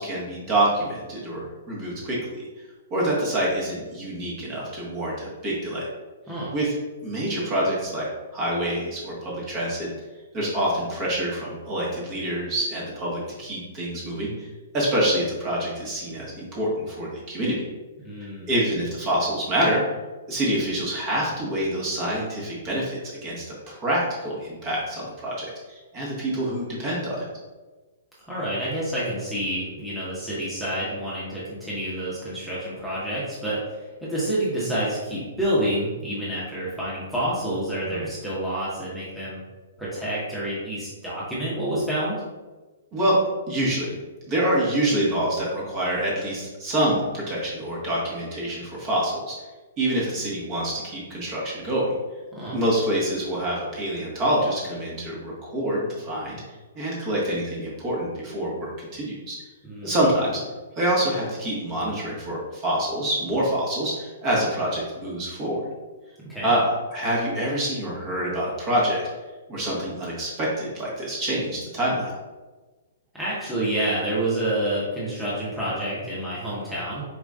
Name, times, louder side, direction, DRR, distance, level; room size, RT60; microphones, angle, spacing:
voice 1, 0.0-2.2 2.9-5.8 6.5-6.7 7.0-8.1 8.3-9.9 10.3-14.3 14.7-17.6 18.5-19.8 20.3-27.2 37.9-38.0 42.9-43.2 43.5-44.0 44.3-49.3 49.8-51.9 52.5-56.4 56.7-59.4 59.8-60.4 60.8-65.6 66.4-66.6 66.9-69.0 69.5-72.1, right 1 dB, 30° right, -5 dB, 1.5 m, -26 dB
voice 2, 18.0-18.5 28.2-39.4 39.8-42.2 52.3-52.6 59.6-60.0 66.3-66.5 73.1-77.0, right 1 dB, ahead, -10 dB, 1.3 m, -28 dB
4.8 x 4.4 x 2.4 m, 1.2 s
figure-of-eight pair, 115°, 0 cm